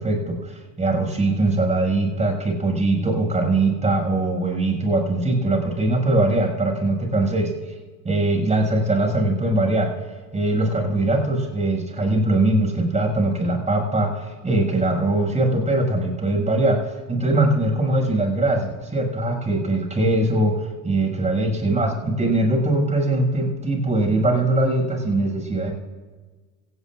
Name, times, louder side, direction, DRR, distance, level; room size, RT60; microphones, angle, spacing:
voice 1, 0.0-7.5 8.0-9.9 10.3-25.7, right 2 dB, 15° right, 1 dB, 6.3 m, -21 dB
27.0 x 17.5 x 2.5 m, 1.4 s
hypercardioid pair, 85°, 46 cm